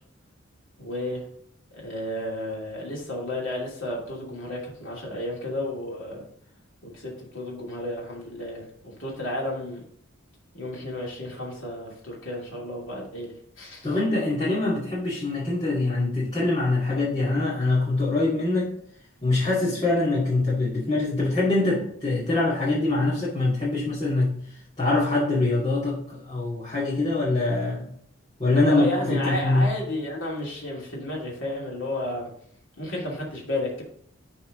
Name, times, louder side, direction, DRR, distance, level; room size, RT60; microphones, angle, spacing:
voice 1, 0.8-1.2 1.7-6.2 6.8-9.8 10.5-13.9 28.7-32.3 32.8-33.8, left 1 dB, 65° left, -3 dB, 2.8 m, -32 dB
voice 2, 13.8-18.7 19.2-24.3 24.8-27.9 28.4-29.7, left 2 dB, 25° left, -11 dB, 2.3 m, -24 dB
11.5 x 4.3 x 3.8 m, 0.64 s
head